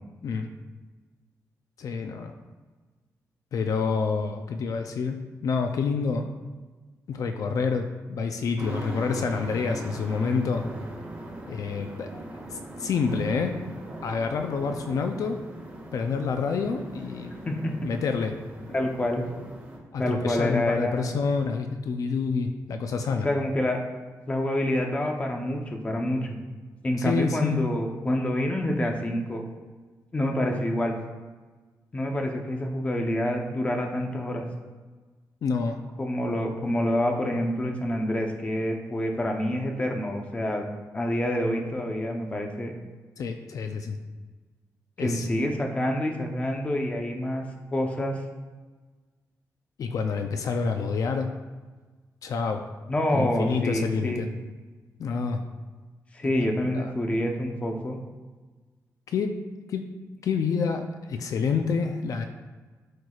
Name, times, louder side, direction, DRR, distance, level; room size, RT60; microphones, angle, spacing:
voice 1, 1.8-2.3 3.5-6.3 7.1-10.7 11.5-12.1 12.5-13.6 14.0-15.4 15.9-17.3 17.8-18.4 19.9-23.3 27.0-27.6 35.4-35.8 43.2-44.0 45.0-45.3 49.8-51.3 52.2-52.6 53.1-54.3 55.0-55.4 56.7-56.9 59.1-59.4 59.7-59.8 60.2-62.3, left 5 dB, 65° left, 6 dB, 0.5 m, -28 dB
sound 1, 8.6-19.8, right 1 dB, 25° right, 1.8 m, -40 dB
voice 2, 17.4-17.9 18.7-19.2 20.0-21.1 23.2-23.8 24.3-26.4 26.8-29.4 30.1-31.0 31.9-34.5 36.0-40.7 40.9-42.7 45.0-47.4 47.7-48.2 52.9-54.2 56.1-58.0, left 1 dB, 20° left, 2 dB, 0.8 m, -27 dB
12.0 x 4.6 x 2.4 m, 1.3 s
wide cardioid pair, 155°, 6 cm